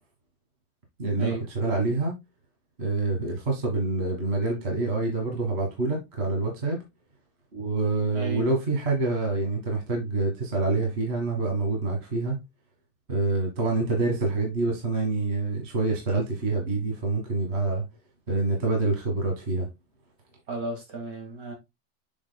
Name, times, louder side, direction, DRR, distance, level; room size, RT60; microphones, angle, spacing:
voice 1, 1.0-2.1 2.8-6.8 7.5-12.4 13.1-17.8 18.3-19.7, right 3 dB, 35° right, 1.9 m, -26 dB
voice 2, 8.1-8.5 20.5-21.5, right 3 dB, 55° right, 2.6 m, -34 dB
7.1 x 6.3 x 2.2 m
omnidirectional pair, 1.9 m